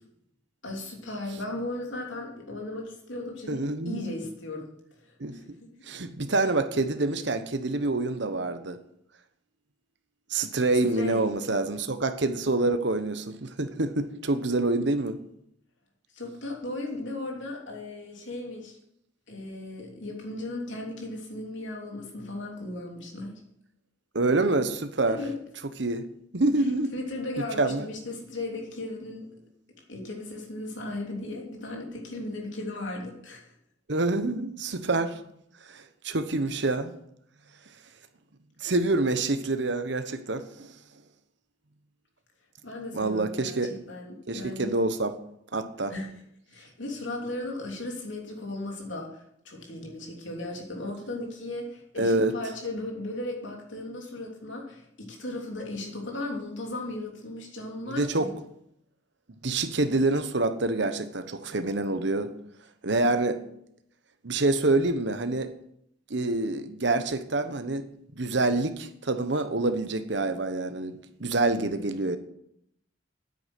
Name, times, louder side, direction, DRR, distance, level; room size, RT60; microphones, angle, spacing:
voice 1, 0.6-4.7 5.0-5.7 10.9-11.3 16.1-18.8 19.3-23.4 25.0-25.4 26.6-29.3 29.9-33.5 42.6-44.7 45.9-46.1 46.5-58.3, left 2 dB, 75° left, 0 dB, 3.0 m, -36 dB
voice 2, 3.5-4.1 5.2-5.6 5.9-8.8 10.3-15.2 24.1-25.2 25.8-26.0 26.3-26.9 27.4-27.9 33.9-35.2 35.7-36.9 38.6-40.7 42.9-43.7 44.3-45.1 45.5-45.9 52.0-52.3 57.8-58.3 59.4-62.3 62.8-63.4 64.2-65.5 66.1-67.9 68.2-70.9 71.2-72.2, right 2 dB, 60° right, 9 dB, 1.1 m, -26 dB
9.5 x 8.5 x 7.7 m, 0.74 s
head